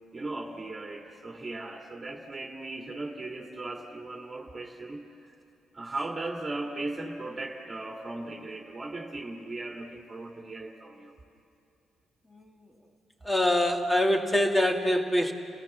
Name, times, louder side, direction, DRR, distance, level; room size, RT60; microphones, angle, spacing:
voice 1, 0.1-5.3 5.7-11.1, right 2 dB, 25° right, 1 dB, 2.1 m, -37 dB
voice 2, 12.3-12.7 13.2-15.3, left 1 dB, 10° left, 3 dB, 2.2 m, -25 dB
30.0 x 17.0 x 7.3 m, 2.6 s
cardioid pair, 90°, 0 cm